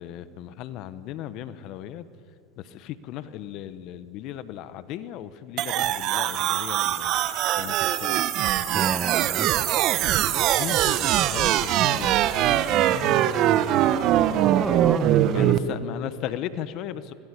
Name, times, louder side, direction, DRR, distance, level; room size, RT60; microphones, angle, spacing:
voice 1, 0.0-2.1 2.6-7.1 7.6-8.2 10.6-13.8 14.3-14.6 15.3-17.1, left 11 dB, 55° left, 13 dB, 1.3 m, -37 dB
sound 1, 5.6-15.6, right 12 dB, 50° right, 1.1 m, -22 dB
voice 2, 8.7-9.5 14.4-15.8, right 3 dB, 15° right, 15 dB, 0.8 m, -31 dB
25.5 x 19.0 x 8.4 m, 2.6 s
hypercardioid pair, 95°, 0 cm